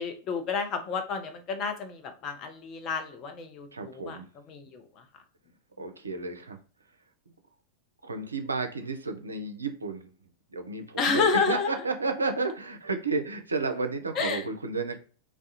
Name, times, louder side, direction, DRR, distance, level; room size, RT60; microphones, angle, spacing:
voice 1, 0.0-4.2 4.5-5.0 11.0-11.7 14.2-14.4, left 5 dB, 35° left, 6 dB, 0.5 m, -30 dB
voice 2, 3.7-4.3 5.8-6.6 7.3-7.4 8.0-10.1 10.5-15.0, right 3 dB, 80° right, 6 dB, 0.4 m, -32 dB
2.3 x 2.0 x 2.8 m, 0.41 s
figure-of-eight pair, 90°, 0 cm